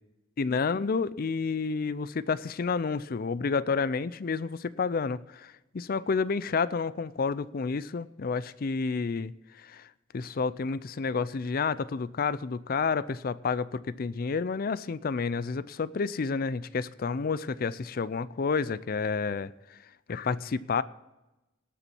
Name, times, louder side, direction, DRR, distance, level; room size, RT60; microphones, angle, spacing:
voice 1, 0.4-9.3 9.6-9.9 10.1-19.5 20.1-20.8, left 5 dB, 50° left, 18 dB, 0.5 m, -30 dB
18.0 x 7.0 x 4.5 m, 1.0 s
head